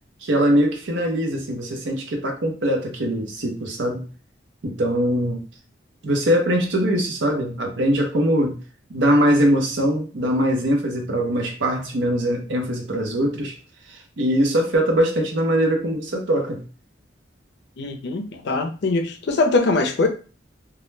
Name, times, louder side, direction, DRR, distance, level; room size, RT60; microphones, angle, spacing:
voice 1, 0.2-4.1 4.6-5.4 6.0-8.6 8.9-13.6 13.9-16.6, equal, 75° right, 2 dB, 0.7 m, -22 dB
voice 2, 17.8-20.1, left 3 dB, 65° left, 4 dB, 0.4 m, -22 dB
2.2 x 2.1 x 3.1 m, 0.36 s
head